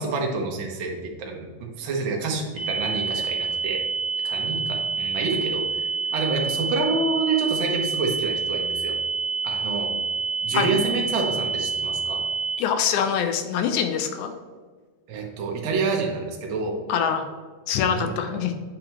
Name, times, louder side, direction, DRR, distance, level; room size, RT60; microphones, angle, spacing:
voice 1, 0.0-3.8 4.2-8.9 9.4-10.0 10.4-12.3 15.1-16.9 17.9-18.2, right 4 dB, 60° right, 0 dB, 1.4 m, -28 dB
sound 1, 2.6-12.6, right 4 dB, 10° right, 1.7 m, -27 dB
voice 2, 12.6-14.3 16.9-17.3 17.7-18.5, left 7 dB, 85° left, 7 dB, 2.1 m, -24 dB
8.5 x 5.2 x 3.0 m, 1.5 s
omnidirectional pair, 3.4 m